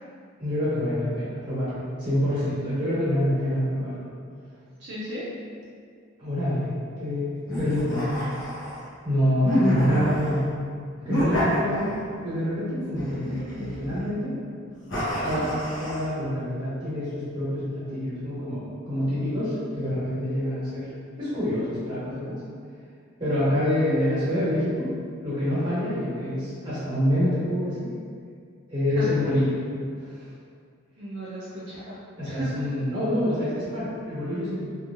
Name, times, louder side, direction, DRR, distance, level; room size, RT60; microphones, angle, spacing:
voice 1, 0.4-1.7 2.0-4.1 6.2-6.7 7.0-8.1 9.0-10.4 11.0-11.9 12.2-14.3 15.2-20.9 21.2-22.4 23.2-24.9 25.2-27.9 28.7-29.6 30.0-30.2 32.2-34.6, left 1 dB, 25° right, -11 dB, 1.2 m, -26 dB
voice 2, 4.8-5.2 15.2-15.4 29.0-29.1 31.0-32.0 32.2-32.6, right 1 dB, 55° right, -9 dB, 0.4 m, -36 dB
sound 1, 7.5-8.9 9.4-10.4 11.0-12.2 12.9-14.0 14.9-16.1, equal, 75° left, 0.8 m, -27 dB
2.9 x 2.5 x 2.4 m, 2.2 s
head